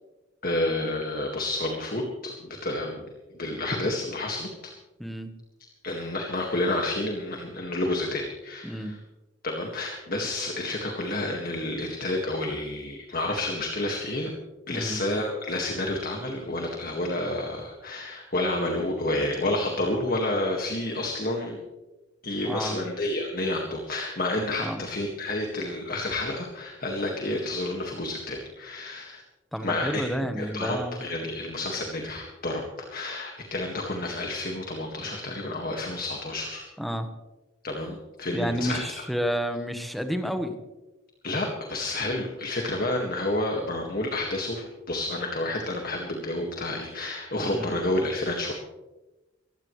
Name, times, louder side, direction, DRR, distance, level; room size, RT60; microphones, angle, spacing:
voice 1, 0.4-3.0 3.3-4.5 5.8-9.0 9.4-14.3 14.7-21.6 22.2-29.2 29.6-30.1 30.4-32.6 32.9-36.6 37.6-38.8 41.2-48.5, left 2 dB, 50° left, 1 dB, 1.9 m, -30 dB
voice 2, 5.0-5.3 8.6-8.9 14.7-15.0 22.4-22.8 24.6-24.8 29.5-31.0 36.8-37.1 38.3-40.5 47.5-47.7, equal, ahead, 6 dB, 1.2 m, -30 dB
22.5 x 16.0 x 3.2 m, 1.1 s
head